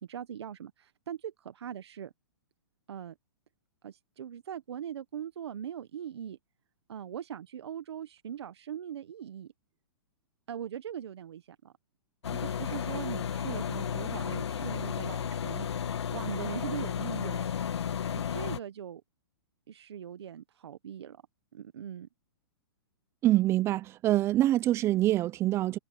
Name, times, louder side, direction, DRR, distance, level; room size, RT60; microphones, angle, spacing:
voice 1, 0.0-2.1 2.9-3.1 3.8-6.4 6.9-9.5 10.5-11.7 12.3-17.5 18.1-19.0 19.7-21.2 21.5-22.1, right 9 dB, 80° right, 1.1 m, -41 dB
sound 1, 12.2-18.6, left 8 dB, 90° left, 1.7 m, -33 dB
voice 2, 23.2-25.8, right 14 dB, 20° right, 0.5 m, -25 dB
hypercardioid pair, 150°, 14 cm